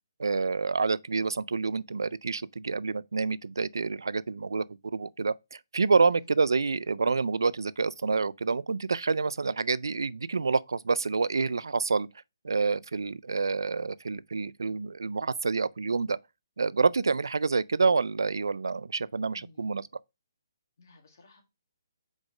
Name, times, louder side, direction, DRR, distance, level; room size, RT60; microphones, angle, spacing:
voice 1, 0.2-4.6 4.9-12.1 12.4-16.2 16.6-19.8, right 4 dB, 90° right, 0.3 m, -28 dB
voice 2, 19.3-19.8 20.8-21.4, left 3 dB, 65° left, 2.0 m, -56 dB
4.8 x 4.1 x 4.9 m
hypercardioid pair, 155°, 2 cm